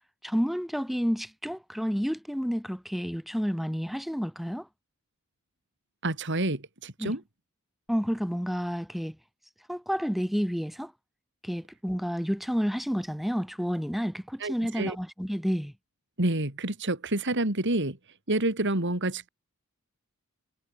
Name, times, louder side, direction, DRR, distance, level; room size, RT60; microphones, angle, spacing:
voice 1, 0.2-4.7 7.0-7.1 7.9-9.2 9.7-10.9 11.4-15.7, equal, ahead, 5.6 m, -30 dB
voice 2, 6.0-7.2 14.4-15.0 16.2-18.0 18.3-19.3, right 2 dB, 55° right, 3.7 m, -28 dB
head